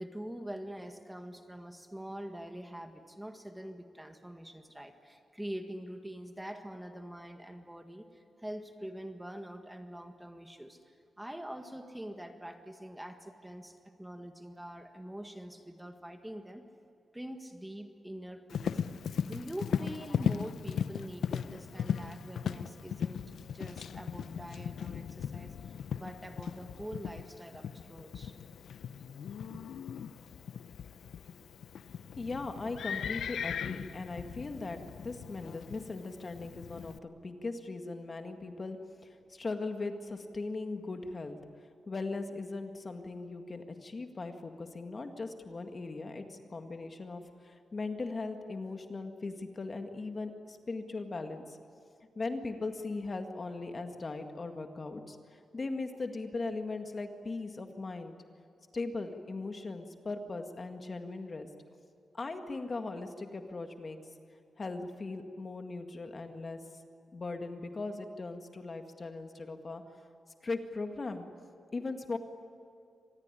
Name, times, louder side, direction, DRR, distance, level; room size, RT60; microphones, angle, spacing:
voice 1, 0.0-16.6 17.1-18.8 19.2-23.2 23.5-28.4 29.5-29.7, right 1 dB, 5° right, 6 dB, 1.7 m, -44 dB
Livestock farm animals working animals, 18.5-37.0, left 7 dB, 90° left, 0.7 m, -38 dB
voice 2, 32.2-41.4 41.9-51.6 52.2-58.1 58.7-61.5 62.1-64.0 64.6-66.6 67.1-69.8 70.4-71.3 71.7-72.2, left 3 dB, 35° left, 6 dB, 1.8 m, -39 dB
25.5 x 19.5 x 10.0 m, 2.3 s
wide cardioid pair, 110°, 0 cm